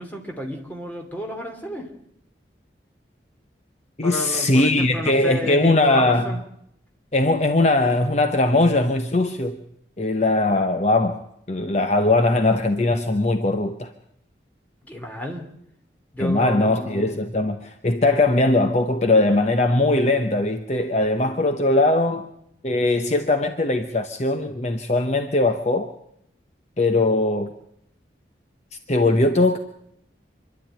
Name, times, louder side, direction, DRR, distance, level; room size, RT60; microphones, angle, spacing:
voice 1, 0.0-1.9 4.0-6.4 14.9-15.5 16.1-17.3, equal, 10° left, 2.8 m, -31 dB
voice 2, 4.0-6.3 7.1-9.6 10.0-11.2 11.5-13.9 16.2-22.3 22.6-25.9 26.8-27.5 28.9-29.6, left 2 dB, 35° left, 0.9 m, -20 dB
26.0 x 11.5 x 9.0 m
head